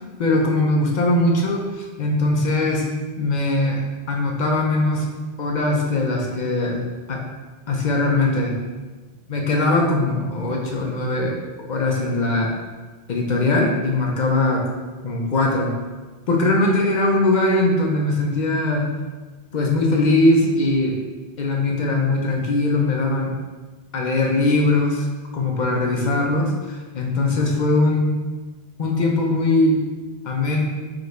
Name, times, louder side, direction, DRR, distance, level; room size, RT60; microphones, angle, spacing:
voice 1, 0.2-2.9 3.2-3.8 4.1-5.1 5.4-7.2 7.7-8.5 9.3-11.4 11.7-12.5 13.1-14.6 15.0-15.7 16.3-18.9 19.5-21.0 21.4-23.3 23.9-25.1 25.3-28.1 28.8-29.8 30.3-30.6, left 2 dB, 50° left, 0 dB, 0.6 m, -20 dB
4.9 x 2.5 x 3.1 m, 1.3 s
omnidirectional pair, 1.1 m